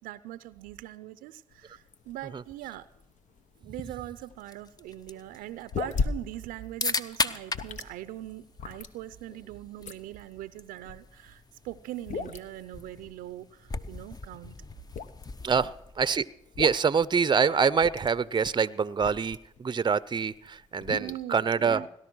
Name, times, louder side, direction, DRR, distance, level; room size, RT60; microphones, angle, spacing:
voice 1, 0.0-2.9 3.6-14.5 15.5-15.7 21.0-21.9, right 14 dB, 80° right, 15 dB, 0.5 m, -41 dB
sound 1, 1.5-19.6 20.1-21.2, left 5 dB, 60° left, 1.0 m, -38 dB
sound 2, 4.4-16.3, left 3 dB, 25° left, 0.8 m, -39 dB
voice 2, 15.4-16.3 16.6-21.8, right 6 dB, 30° right, 18 dB, 0.6 m, -25 dB
18.0 x 11.0 x 6.1 m, 0.75 s
supercardioid pair, 50°, 14 cm